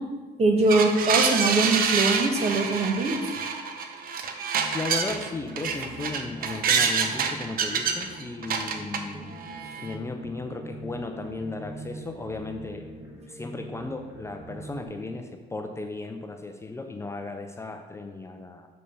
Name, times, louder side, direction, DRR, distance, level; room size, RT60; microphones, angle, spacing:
voice 1, 0.4-3.3 9.1-9.2, right 2 dB, 40° right, 3 dB, 1.3 m, -22 dB
sound 1, 0.7-5.3 5.6-9.0 9.4-10.0, right 6 dB, 60° right, 0.9 m, -27 dB
voice 2, 4.4-9.4 9.8-12.9 13.1-18.7, left 3 dB, 15° left, 5 dB, 0.5 m, -36 dB
sound 2, 4.6-14.8, right 1 dB, 15° right, 1.7 m, -43 dB
6.7 x 5.4 x 5.6 m, 1.3 s
cardioid pair, 110°, 17 cm